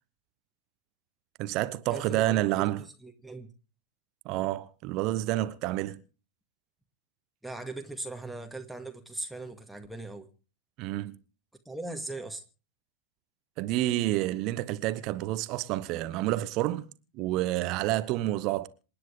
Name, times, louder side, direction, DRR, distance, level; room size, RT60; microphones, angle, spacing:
voice 1, 1.4-2.8 4.2-6.0 10.8-11.2 13.6-18.7, right 15 dB, 40° right, 1.0 m, -29 dB
voice 2, 1.9-2.7 3.0-3.5 7.4-10.3 11.7-12.4, right 2 dB, ahead, 2.0 m, -39 dB
27.5 x 10.0 x 3.6 m
figure-of-eight pair, 90°, 0 cm